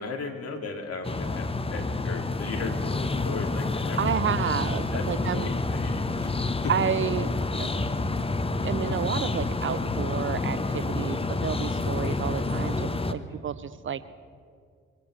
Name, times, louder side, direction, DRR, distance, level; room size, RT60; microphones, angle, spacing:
voice 1, 0.0-4.2 4.9-6.3 6.6-6.9 13.1-13.4, left 4 dB, 50° left, 2 dB, 2.5 m, -37 dB
sound 1, 1.0-13.1, left 3 dB, 15° left, 0.9 m, -28 dB
voice 2, 4.0-5.5 6.7-7.3 7.6-7.7 8.6-14.0, right 8 dB, 40° right, 16 dB, 0.6 m, -30 dB
24.5 x 18.0 x 3.3 m, 2.1 s
hypercardioid pair, 45°, 32 cm